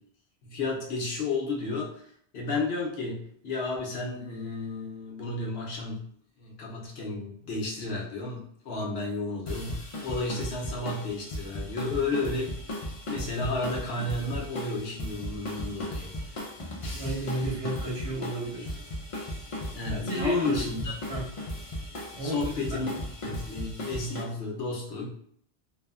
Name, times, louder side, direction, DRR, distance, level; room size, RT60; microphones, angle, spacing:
voice 1, 0.4-2.0 2.3-6.0 6.4-12.8 13.1-16.5 17.4-17.6 19.7-20.9 22.2-22.9 23.2-25.1, left 3 dB, 70° left, -1 dB, 0.9 m, -32 dB
sound 1, 9.5-24.2, left 1 dB, 45° left, 0.4 m, -37 dB
voice 2, 16.8-18.7 19.9-20.7 21.1-21.3 22.1-22.8, right 1 dB, 75° right, -5 dB, 1.4 m, -32 dB
3.1 x 2.1 x 2.3 m, 0.66 s
omnidirectional pair, 1.1 m